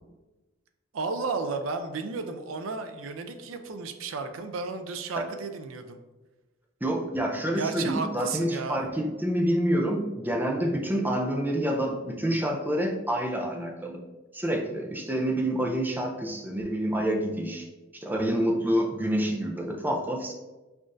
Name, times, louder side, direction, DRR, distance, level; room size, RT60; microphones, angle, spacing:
voice 1, 0.9-6.0 7.6-8.8, right 4 dB, 75° right, 7 dB, 0.4 m, -33 dB
voice 2, 6.8-14.0 14.3-17.7 17.9-20.3, right 1 dB, 10° right, 1 dB, 0.4 m, -27 dB
5.7 x 2.4 x 2.5 m, 1.1 s
head